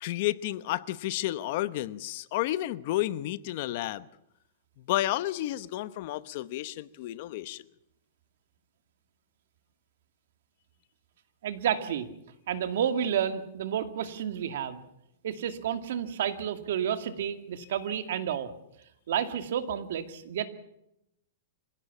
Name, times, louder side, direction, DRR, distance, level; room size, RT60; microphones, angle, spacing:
voice 1, 0.0-4.1 4.9-7.6, left 15 dB, 45° left, 0.9 m, -31 dB
voice 2, 11.4-12.1 12.5-14.8 15.2-18.5 19.1-20.5, right 9 dB, 65° right, 2.3 m, -30 dB
26.0 x 17.0 x 7.3 m
supercardioid pair, 160°, 0 cm